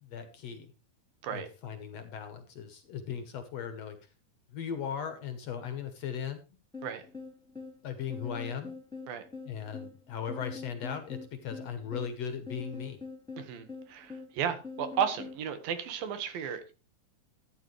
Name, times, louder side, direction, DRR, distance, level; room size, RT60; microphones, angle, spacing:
voice 1, 0.0-0.7 1.3-4.0 4.5-6.4 7.8-8.7 9.5-13.0, left 7 dB, 65° left, 9 dB, 1.8 m, -38 dB
sound 1, 6.7-15.4, left 4 dB, ahead, 2.6 m, -44 dB
voice 2, 13.4-16.7, right 8 dB, 85° right, 9 dB, 3.3 m, -34 dB
13.0 x 9.7 x 3.2 m, 0.31 s
omnidirectional pair, 4.0 m